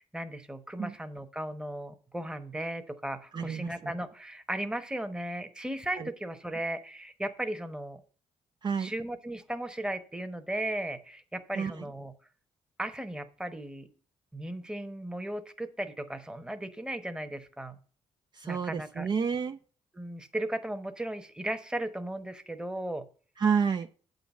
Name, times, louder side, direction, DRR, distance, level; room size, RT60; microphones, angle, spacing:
voice 1, 0.0-8.0 8.8-12.1 12.8-13.9 14.3-17.8 18.4-19.1 19.9-23.0, right 1 dB, 5° right, 9 dB, 1.0 m, -36 dB
voice 2, 3.3-3.9 6.0-6.1 8.6-8.9 11.5-11.9 18.3-19.6 23.4-23.9, right 6 dB, 40° right, 8 dB, 0.4 m, -30 dB
8.4 x 4.0 x 7.0 m, 0.41 s
cardioid pair, 80°, 12 cm